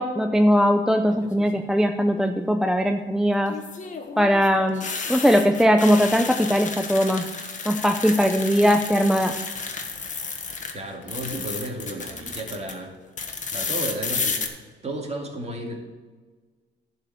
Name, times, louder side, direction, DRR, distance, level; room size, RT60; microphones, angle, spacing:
voice 1, 0.0-3.5 4.2-7.3 7.7-9.3, equal, ahead, 5 dB, 0.6 m, -20 dB
sound 1, 1.1-1.6 3.5-10.7 11.0-12.7 13.2-14.5, left 4 dB, 40° left, 1.5 m, -32 dB
voice 2, 10.7-12.9 13.5-14.4 14.8-15.8, right 1 dB, 30° right, 1 dB, 2.4 m, -33 dB
11.0 x 5.0 x 7.4 m, 1.4 s
cardioid pair, 90°, 20 cm